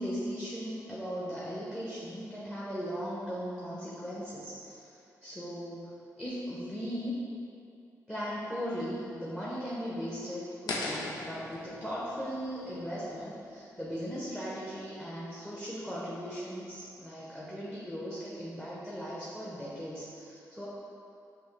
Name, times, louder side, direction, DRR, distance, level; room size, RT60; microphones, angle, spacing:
voice 1, 0.0-7.1 8.1-20.7, equal, 5° left, -8 dB, 0.8 m, -38 dB
sound 1, 10.7-13.7, left 2 dB, 85° left, 0.5 m, -39 dB
5.4 x 2.6 x 3.2 m, 2.7 s
cardioid pair, 65°, 7 cm